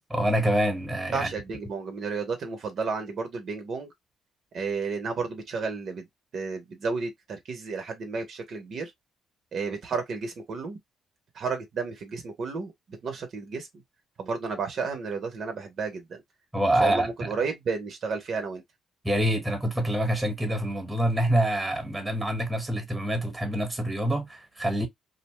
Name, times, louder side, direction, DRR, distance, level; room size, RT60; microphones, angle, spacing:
voice 1, 0.1-1.3 16.5-17.3 19.0-24.9, right 1 dB, 10° right, 1.1 m, -26 dB
voice 2, 1.1-3.9 4.5-6.1 6.3-8.9 9.5-10.8 11.3-12.7 13.0-13.7 14.2-16.2 16.8-18.6, right 4 dB, 60° right, 0.7 m, -32 dB
2.6 x 2.1 x 3.0 m
cardioid pair, 90°, 0 cm